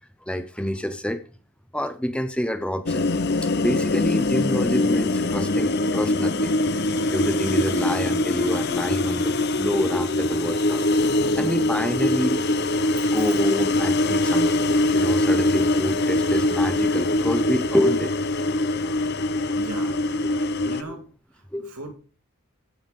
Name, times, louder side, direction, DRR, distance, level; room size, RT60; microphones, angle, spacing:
voice 1, 0.3-1.2 1.7-3.1 3.4-10.8 11.4-12.4 13.1-14.6 14.9-18.1 18.5-18.8 20.3-20.4 20.8-20.9 21.5-21.7, equal, 5° left, 9 dB, 0.8 m, -27 dB
sound 1, 2.9-20.8, left 2 dB, 50° left, 0.7 m, -23 dB
voice 2, 11.3-11.9 12.9-13.4 19.5-20.0 20.6-21.9, right 1 dB, 80° right, 3 dB, 2.6 m, -39 dB
15.5 x 5.7 x 5.3 m, 0.38 s
head